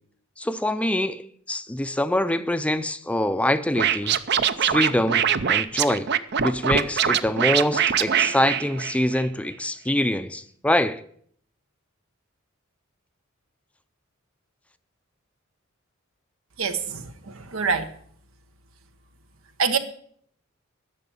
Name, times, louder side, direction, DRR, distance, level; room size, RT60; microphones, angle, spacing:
voice 1, 0.4-4.2 4.6-6.1 6.4-11.0, left 1 dB, 5° left, 0.5 m, -24 dB
Scratching (performance technique), 3.7-9.2, right 8 dB, 55° right, 0.6 m, -23 dB
voice 2, 16.6-17.9 19.6-19.8, right 5 dB, 90° right, 1.2 m, -25 dB
11.0 x 7.0 x 8.6 m
head